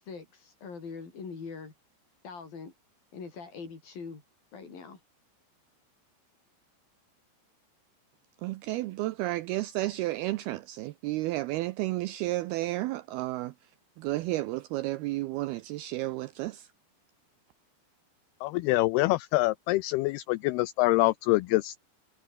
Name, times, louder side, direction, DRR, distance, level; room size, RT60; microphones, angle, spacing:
voice 1, 0.0-1.7 2.2-2.7 3.1-4.2 4.5-5.0, left 5 dB, 55° left, 7.1 m, -42 dB
voice 2, 8.4-16.7, right 17 dB, 85° right, 2.3 m, -32 dB
voice 3, 18.4-21.8, left 20 dB, 80° left, 2.3 m, -25 dB
omnidirectional pair, 5.1 m